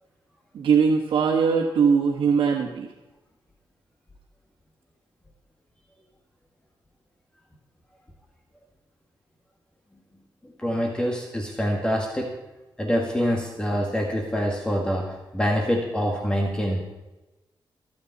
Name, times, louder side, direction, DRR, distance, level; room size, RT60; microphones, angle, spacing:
voice 1, 0.5-2.9, right 6 dB, 85° right, 0 dB, 1.6 m, -21 dB
voice 2, 10.6-12.3 12.8-16.8, equal, 10° left, 0 dB, 1.9 m, -25 dB
25.5 x 8.9 x 4.2 m, 1.1 s
wide cardioid pair, 135°, 9 cm